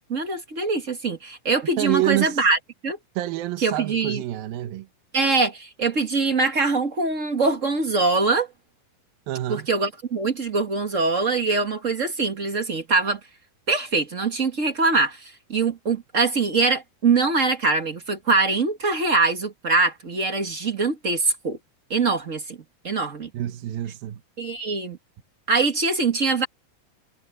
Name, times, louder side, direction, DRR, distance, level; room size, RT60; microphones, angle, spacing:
voice 1, 0.1-3.0 3.6-4.2 5.1-8.5 9.5-13.2 13.7-21.6 21.9-22.6 22.8-23.3 24.4-25.0 25.5-26.5, right 3 dB, 35° right, 1.2 m, -23 dB
voice 2, 1.8-2.5 3.2-4.9 9.3-9.7 23.3-24.2, right 15 dB, 90° right, 2.8 m, -27 dB
omnidirectional pair, 4.0 m